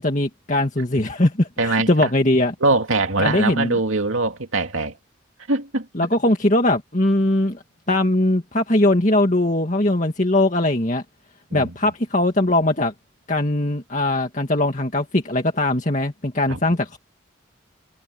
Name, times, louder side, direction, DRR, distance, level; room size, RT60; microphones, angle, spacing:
voice 1, 0.0-2.5 3.2-3.8 5.9-11.0 11.5-12.9 13.3-17.0, left 1 dB, 40° left, 2.1 m, -20 dB
voice 2, 1.6-2.1 2.6-5.0 5.5-5.9 11.5-11.7 16.5-16.6, right 3 dB, 90° right, 2.5 m, -22 dB
head